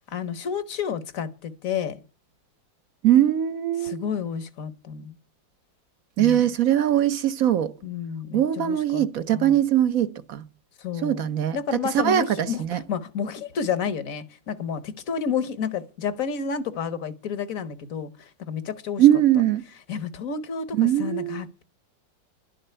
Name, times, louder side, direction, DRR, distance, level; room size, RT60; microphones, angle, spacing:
voice 1, 0.1-2.0 3.8-5.1 6.2-6.4 7.8-9.1 9.3-9.6 10.8-11.2 11.5-12.6 12.9-19.0 19.9-21.6, left 7 dB, 50° left, 1.2 m, -30 dB
voice 2, 3.0-4.0 6.2-7.7 8.3-10.4 11.0-12.8 19.0-19.6 20.8-21.4, right 11 dB, 55° right, 1.1 m, -21 dB
12.0 x 6.7 x 9.0 m
omnidirectional pair, 2.1 m